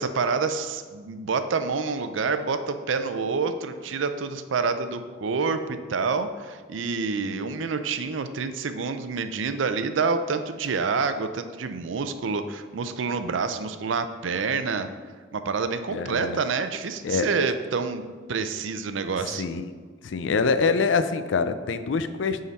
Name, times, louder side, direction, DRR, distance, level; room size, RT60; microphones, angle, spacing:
voice 1, 0.0-14.9 15.3-18.0 18.3-19.4, right 4 dB, 90° right, 10 dB, 0.5 m, -27 dB
voice 2, 15.9-16.4 17.0-17.3 19.4-19.7 20.0-22.4, left 4 dB, 80° left, 11 dB, 0.4 m, -25 dB
9.4 x 3.8 x 4.1 m, 1.5 s
head